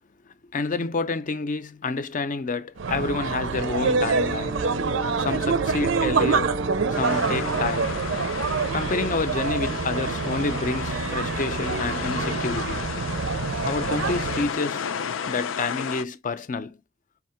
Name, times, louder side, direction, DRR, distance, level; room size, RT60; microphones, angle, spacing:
voice 1, 0.5-4.6 5.2-6.6 6.9-8.0 8.7-12.9 13.6-14.9 15.3-16.8, left 3 dB, 40° left, 0.6 m, -29 dB
sound 1, 2.8-14.5, right 4 dB, 75° right, 0.6 m, -26 dB
Brass instrument, 3.5-7.7, right 2 dB, 15° right, 0.3 m, -35 dB
sound 2, 6.9-16.0, left 7 dB, 90° left, 0.5 m, -33 dB
4.1 x 2.8 x 4.3 m
head